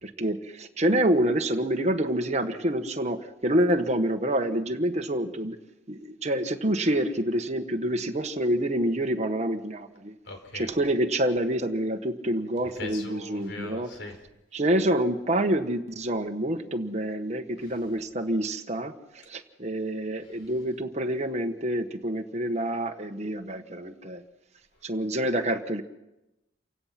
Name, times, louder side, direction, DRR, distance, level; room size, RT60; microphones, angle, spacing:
voice 1, 0.0-5.6 5.9-10.2 10.5-13.9 14.5-24.2 24.8-25.8, right 1 dB, 40° right, 5 dB, 1.3 m, -27 dB
voice 2, 10.2-10.7 12.8-14.1, left 3 dB, 70° left, 4 dB, 4.8 m, -39 dB
28.5 x 16.5 x 5.9 m, 0.96 s
head